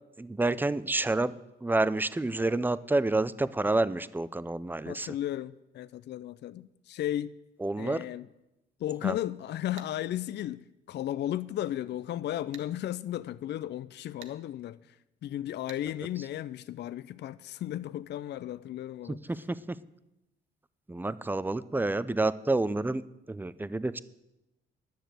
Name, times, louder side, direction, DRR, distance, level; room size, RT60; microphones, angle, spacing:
voice 1, 0.2-1.3 1.6-5.1 7.6-8.1 9.0-9.1 19.3-19.8 20.9-23.0 23.3-24.0, right 2 dB, 10° right, 17 dB, 0.5 m, -29 dB
voice 2, 4.9-7.3 7.8-8.3 8.8-10.6 10.9-15.0 15.2-19.2, left 12 dB, 60° left, 16 dB, 0.4 m, -35 dB
sound 1, 9.8-9.9 12.5-12.7 14.2-14.4 15.7-15.9, right 8 dB, 75° right, 1.2 m, -48 dB
10.5 x 6.5 x 9.1 m, 0.92 s
cardioid pair, 90°, 20 cm